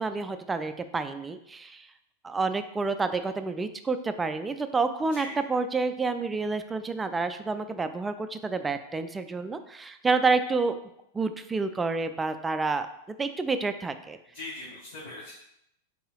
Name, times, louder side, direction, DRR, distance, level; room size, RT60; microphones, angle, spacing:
voice 1, 0.0-1.9 2.2-10.8 11.1-14.2, right 4 dB, 15° right, 9 dB, 0.3 m, -29 dB
voice 2, 14.3-15.3, left 2 dB, 60° left, -5 dB, 1.0 m, -40 dB
5.5 x 3.7 x 2.3 m, 0.79 s
figure-of-eight pair, 90°, 0 cm